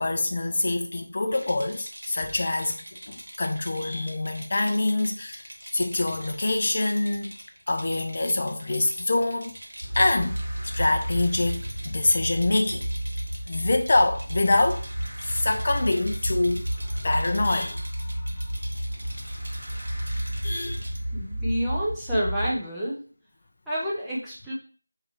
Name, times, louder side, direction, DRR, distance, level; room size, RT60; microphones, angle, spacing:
voice 1, 0.0-5.4 5.7-7.3 7.7-9.6 10.0-10.4 10.6-12.9 13.5-14.8 15.2-18.3 20.4-20.8, left 2 dB, 35° left, 0.4 m, -25 dB
Rattle, 1.3-21.0, right 1 dB, 65° right, 1.1 m, -44 dB
sound 1, 9.8-22.5, right 1 dB, 30° right, 1.9 m, -31 dB
voice 2, 21.1-23.0 23.7-24.5, equal, ahead, 0.6 m, -29 dB
3.5 x 3.2 x 3.4 m
figure-of-eight pair, 175°, 0 cm